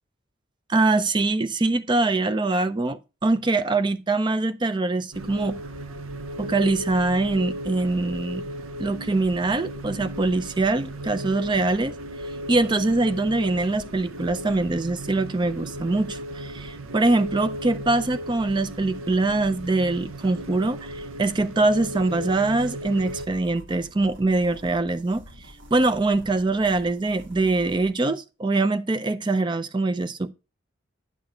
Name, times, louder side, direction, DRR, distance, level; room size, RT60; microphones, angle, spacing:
voice 1, 0.7-5.6 6.4-8.5 8.8-11.9 12.5-25.2 25.7-30.3, right 2 dB, 25° right, 0.4 m, -23 dB
sound 1, 5.1-23.3, equal, 90° right, 0.7 m, -36 dB
sound 2, 23.0-27.9, equal, 65° right, 1.4 m, -47 dB
9.6 x 6.1 x 3.7 m
head